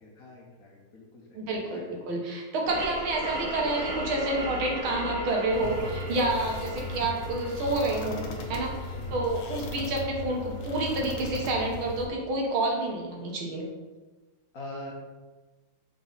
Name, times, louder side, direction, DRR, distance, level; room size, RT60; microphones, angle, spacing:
voice 1, 0.0-2.0 2.6-2.8 9.0-9.2 14.5-14.9, left 1 dB, 50° left, -2 dB, 1.3 m, -44 dB
voice 2, 1.4-13.7, right 2 dB, 75° right, 0 dB, 2.0 m, -29 dB
sound 1, 2.7-12.0, right 1 dB, 50° right, 2.2 m, -38 dB
sound 2, 5.5-12.1, left 2 dB, 70° left, 1.4 m, -37 dB
6.1 x 4.8 x 4.0 m, 1.2 s
omnidirectional pair, 2.3 m